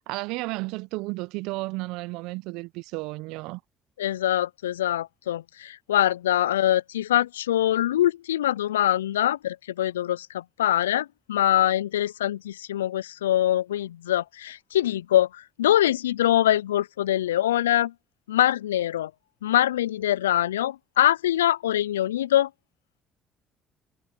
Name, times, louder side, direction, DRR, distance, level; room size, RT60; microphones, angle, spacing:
voice 1, 0.1-3.6, right 23 dB, 70° right, 0.8 m, -33 dB
voice 2, 4.0-17.9 18.3-19.1 19.4-22.5, left 12 dB, 85° left, 0.3 m, -24 dB
hypercardioid pair, 55°, 0 cm